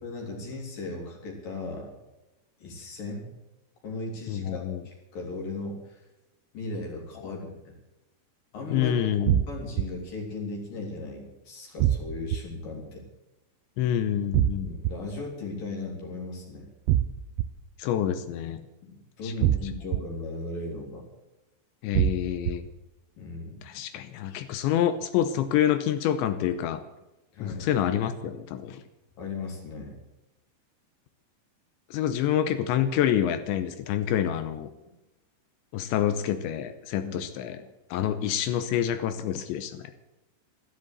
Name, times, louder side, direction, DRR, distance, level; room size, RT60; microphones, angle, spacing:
voice 1, 0.0-1.9 2.6-3.3 3.8-6.0 6.5-7.7 8.5-9.1 9.5-13.0 14.6-16.7 18.8-21.1 23.2-23.6 27.3-27.7 29.2-30.0 37.0-37.2 37.9-38.1, left 2 dB, 50° left, 0 dB, 4.2 m, -37 dB
voice 2, 4.3-4.8 8.7-9.4 13.8-14.7 17.8-18.6 19.2-19.3 21.8-22.6 23.7-26.8 27.4-28.8 31.9-34.7 35.7-37.6 37.9-39.8, left 10 dB, 85° left, 10 dB, 3.0 m, -27 dB
sound 1, 9.3-9.8 11.8-12.4 14.3-14.9 16.9-17.5 19.4-20.0 21.9-22.5, right 13 dB, 90° right, 3.2 m, -23 dB
13.0 x 12.5 x 8.1 m, 0.99 s
omnidirectional pair, 5.4 m